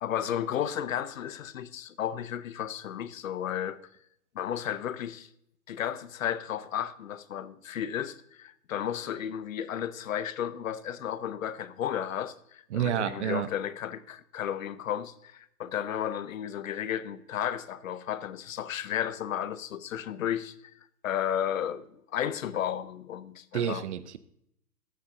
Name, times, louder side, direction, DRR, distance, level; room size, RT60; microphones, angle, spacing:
voice 1, 0.0-3.8 4.3-5.3 5.7-20.5 21.0-23.8, left 10 dB, 55° left, 0.8 m, -33 dB
voice 2, 12.7-13.5 23.5-24.2, right 9 dB, 45° right, 0.7 m, -29 dB
14.0 x 9.5 x 2.6 m
figure-of-eight pair, 120°, 48 cm